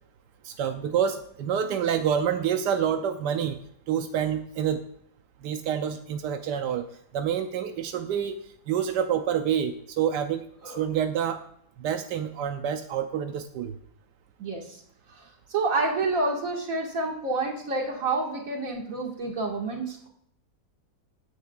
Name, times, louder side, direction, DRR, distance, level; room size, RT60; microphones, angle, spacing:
voice 1, 0.4-3.6 3.9-4.8 5.4-8.4 8.7-11.4 11.8-13.8, right 8 dB, 90° right, 6 dB, 1.3 m, -27 dB
voice 2, 14.4-14.8 15.2-15.3 15.5-20.1, right 3 dB, 55° right, 0 dB, 2.3 m, -28 dB
15.5 x 9.5 x 2.4 m, 0.69 s
omnidirectional pair, 1.8 m